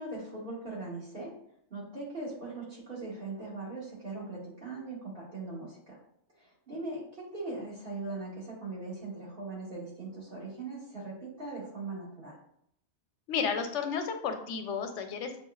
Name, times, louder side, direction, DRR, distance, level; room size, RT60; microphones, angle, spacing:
voice 1, 0.0-1.3 1.7-6.0 6.4-12.4, right 3 dB, 50° right, -7 dB, 2.0 m, -40 dB
voice 2, 13.3-15.4, left 6 dB, 85° left, 6 dB, 0.9 m, -32 dB
7.2 x 2.4 x 2.3 m, 0.70 s
omnidirectional pair, 1.2 m